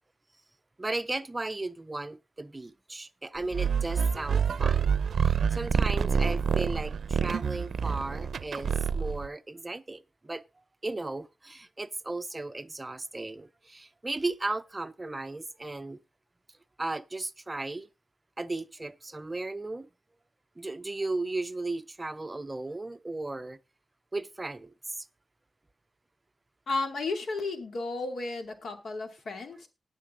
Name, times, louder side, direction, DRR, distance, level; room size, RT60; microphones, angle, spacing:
voice 1, 0.8-10.4 10.8-16.0 16.8-17.9 18.4-19.9 20.6-23.6 24.1-25.1, right 2 dB, 20° right, 0.5 m, -36 dB
sound 1, 3.5-9.3, right 7 dB, 70° right, 0.5 m, -27 dB
voice 2, 26.7-29.7, left 3 dB, 75° left, 2.4 m, -33 dB
18.5 x 6.5 x 3.7 m
wide cardioid pair, 130°, 0 cm